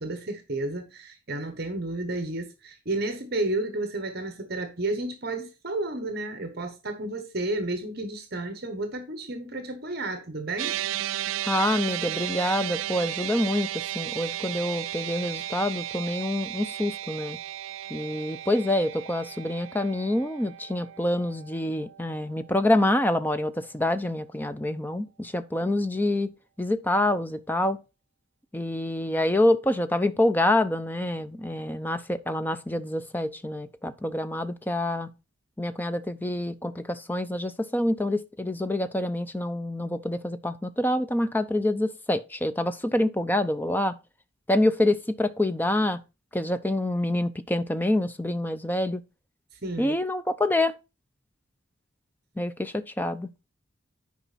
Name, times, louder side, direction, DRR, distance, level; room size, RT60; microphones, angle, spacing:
voice 1, 0.0-10.8 49.5-50.0, right 2 dB, 50° right, 1.2 m, -32 dB
sound 1, 10.6-23.0, right 13 dB, 80° right, 0.3 m, -35 dB
voice 2, 11.5-17.4 17.9-26.3 26.6-27.8 28.5-35.1 35.6-44.0 44.5-46.0 46.3-49.0 49.8-50.8 52.4-53.3, left 1 dB, 10° left, 0.6 m, -26 dB
10.0 x 5.1 x 4.1 m
head